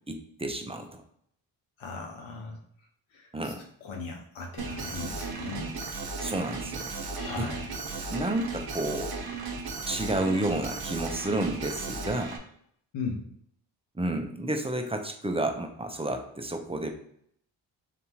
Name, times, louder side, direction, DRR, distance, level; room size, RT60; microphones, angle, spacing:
voice 1, 0.1-1.0 3.3-3.6 6.2-6.9 7.3-7.5 8.1-9.1 9.9-12.4 13.9-16.9, right 1 dB, 10° right, 4 dB, 0.7 m, -31 dB
voice 2, 1.8-2.6 3.1-3.5 3.8-5.8 7.1-7.7 12.9-13.2, left 4 dB, 80° left, 1 dB, 1.2 m, -37 dB
Alarm, 4.6-12.4, right 4 dB, 50° right, 0.9 m, -36 dB
4.0 x 3.4 x 3.0 m, 0.68 s
supercardioid pair, 55°, 47 cm